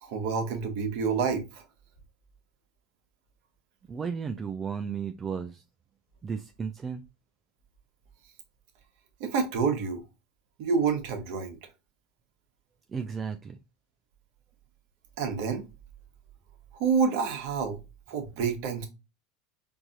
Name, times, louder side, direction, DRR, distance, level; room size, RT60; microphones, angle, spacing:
voice 1, 0.0-1.6 9.2-10.0 10.6-11.6 15.2-15.6 16.7-17.8 18.1-18.9, right 5 dB, 65° right, 1.1 m, -28 dB
voice 2, 3.9-5.6 6.2-7.0 12.9-13.6, right 6 dB, 25° right, 0.4 m, -34 dB
4.5 x 2.7 x 2.5 m
supercardioid pair, 110°, 0 cm